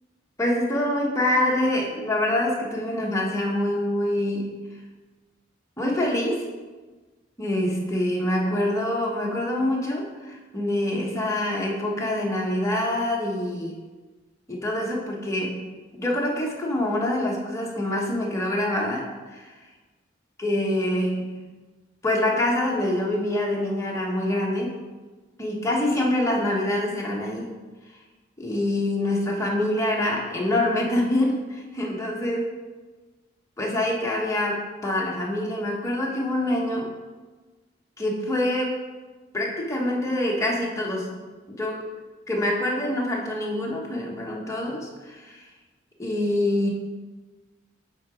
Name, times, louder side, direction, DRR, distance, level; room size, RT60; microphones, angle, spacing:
voice 1, 0.4-4.6 5.8-6.5 7.4-13.8 14.5-19.5 20.4-21.5 22.0-24.9 25.4-27.5 28.4-32.4 33.6-36.9 38.0-38.8 39.3-41.2 41.5-41.9 42.3-45.4 46.0-46.7, left 1 dB, 15° left, -2 dB, 1.1 m, -25 dB
7.8 x 3.8 x 5.0 m, 1.3 s
head